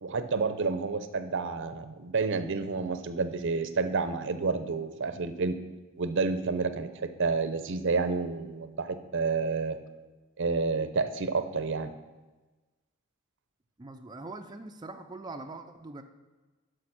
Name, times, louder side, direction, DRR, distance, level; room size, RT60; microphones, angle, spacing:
voice 1, 0.0-5.6 6.0-9.8 10.4-11.9, right 4 dB, 60° right, 11 dB, 0.7 m, -29 dB
voice 2, 13.8-16.0, right 2 dB, 20° right, 4 dB, 0.5 m, -42 dB
11.5 x 5.1 x 6.0 m, 1.2 s
head